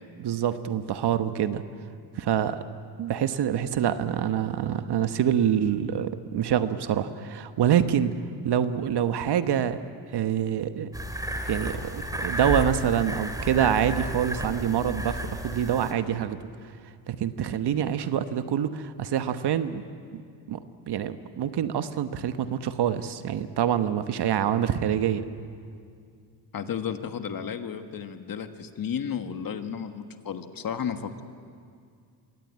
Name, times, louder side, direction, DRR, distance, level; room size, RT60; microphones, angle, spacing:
voice 1, 0.2-1.6 2.2-2.6 3.0-8.2 8.4-9.8 10.1-10.9 11.4-16.4 17.1-19.8 20.1-20.2 20.5-20.6 20.9-25.2, right 9 dB, 55° right, 10 dB, 1.2 m, -26 dB
sound 1, 10.9-15.9, equal, 10° right, 2.5 m, -32 dB
voice 2, 26.5-31.2, left 7 dB, 45° left, 8 dB, 1.6 m, -33 dB
23.5 x 17.0 x 8.9 m, 2.2 s
cardioid pair, 85°, 47 cm